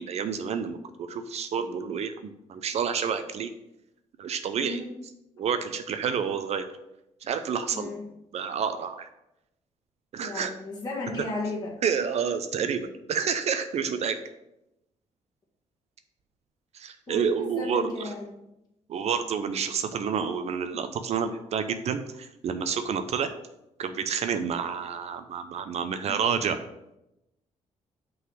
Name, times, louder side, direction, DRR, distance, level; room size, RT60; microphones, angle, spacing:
voice 1, 0.0-3.5 4.2-4.8 5.4-6.6 7.2-7.9 8.3-9.1 10.1-10.5 11.8-14.2 16.7-18.1 18.9-23.3 23.8-26.6, right 6 dB, 60° right, 9 dB, 0.5 m, -29 dB
voice 2, 7.7-8.1 10.2-11.8 17.1-18.4 26.1-26.3, left 2 dB, 35° left, -4 dB, 1.6 m, -35 dB
5.6 x 4.0 x 6.1 m, 0.88 s
cardioid pair, 110°, 12 cm